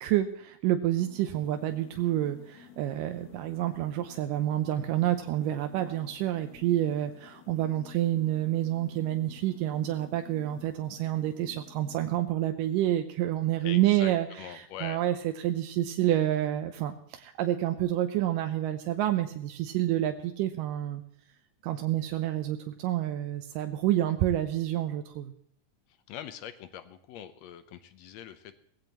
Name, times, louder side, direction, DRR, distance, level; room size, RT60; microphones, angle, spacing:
voice 1, 0.0-14.3 14.8-15.2 15.4-21.0 21.6-25.3, right 13 dB, 85° right, 7 dB, 2.3 m, -28 dB
sound 1, 0.9-12.1, left 9 dB, 60° left, 2.2 m, -53 dB
voice 2, 13.6-15.0 26.1-28.6, left 10 dB, 80° left, 11 dB, 1.6 m, -43 dB
18.5 x 15.5 x 3.0 m, 0.65 s
omnidirectional pair, 3.8 m